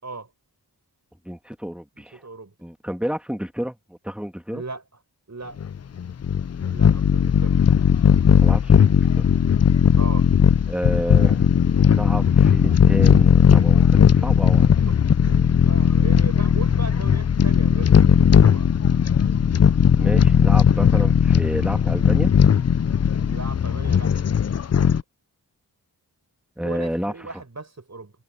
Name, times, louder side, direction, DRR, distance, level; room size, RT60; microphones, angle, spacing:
voice 1, 1.3-2.2 2.6-4.6 8.4-9.3 10.7-11.5 11.7-14.7 20.0-22.3 26.6-27.1, equal, 5° right, 2.0 m, -30 dB
voice 2, 2.1-2.5 4.5-4.8 5.3-5.6 6.7-7.6 10.0-10.3 14.8-14.9 15.2-18.7 23.2-24.1 26.6-28.1, right 3 dB, 45° right, 7.3 m, -37 dB
sound 1, 5.6-25.0, left 7 dB, 40° left, 0.5 m, -17 dB
wide cardioid pair, 85°, 39 cm